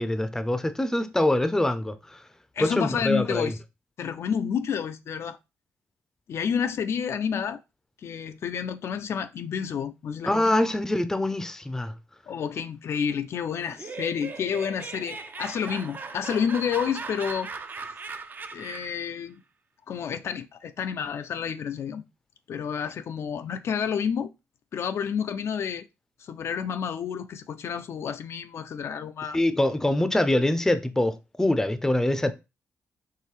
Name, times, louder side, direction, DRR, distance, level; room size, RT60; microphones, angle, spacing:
voice 1, 0.0-2.2 2.6-3.5 10.3-11.9 29.3-32.3, left 1 dB, 10° left, 0.5 m, -24 dB
voice 2, 2.6-3.6 4.0-5.4 6.3-7.6 8.0-10.6 12.3-17.5 18.5-19.4 19.9-22.0 22.5-24.3 24.7-25.8 26.2-29.4, left 7 dB, 60° left, 0.4 m, -30 dB
Laughter, 13.6-19.1, right 4 dB, 40° right, 0.5 m, -38 dB
4.6 x 3.1 x 3.2 m
cardioid pair, 85°, 5 cm